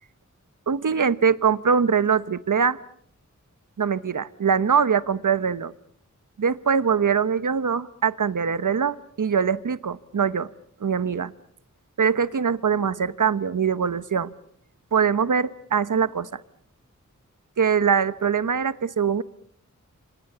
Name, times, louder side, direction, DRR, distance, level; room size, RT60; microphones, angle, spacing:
voice 1, 0.7-2.8 3.8-5.7 6.4-10.5 10.8-11.3 12.0-14.3 14.9-16.4 17.6-19.2, right 6 dB, 80° right, 15 dB, 1.0 m, -22 dB
28.0 x 26.0 x 6.8 m, 0.66 s
wide cardioid pair, 65°, 30 cm